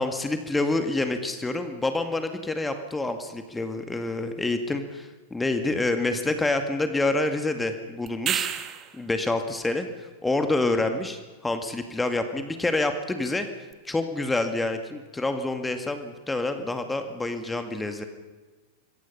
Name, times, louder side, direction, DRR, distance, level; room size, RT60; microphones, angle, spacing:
voice 1, 0.0-8.5 8.9-13.5 13.8-18.0, left 2 dB, 10° left, 7 dB, 2.1 m, -27 dB
sound 1, 8.1-9.0 13.7-13.8, right 10 dB, 30° right, 1.5 m, -29 dB
26.5 x 22.5 x 5.6 m, 1.3 s
figure-of-eight pair, 90°, 0 cm